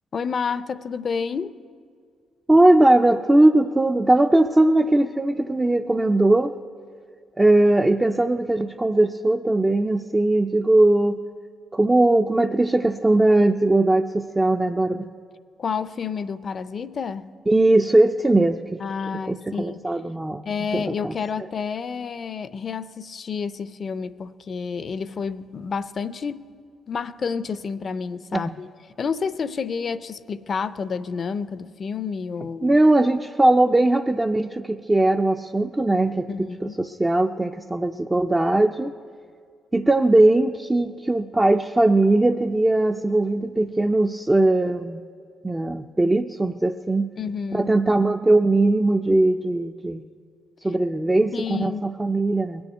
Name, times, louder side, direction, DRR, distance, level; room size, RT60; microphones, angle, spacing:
voice 1, 0.1-1.6 15.6-17.3 18.8-19.8 20.5-26.4 26.9-28.7 29.0-32.8 36.3-36.8 47.2-47.7 51.3-51.9, left 5 dB, 45° left, 0.5 m, -29 dB
voice 2, 2.5-6.5 7.4-11.2 11.7-15.0 17.5-18.8 19.3-20.4 20.7-21.1 28.3-28.6 32.6-36.3 36.6-38.9 39.7-45.0 45.4-47.1 47.5-50.0 50.6-52.6, right 2 dB, 15° right, 0.4 m, -19 dB
20.5 x 7.0 x 9.1 m
cardioid pair, 90°, 0 cm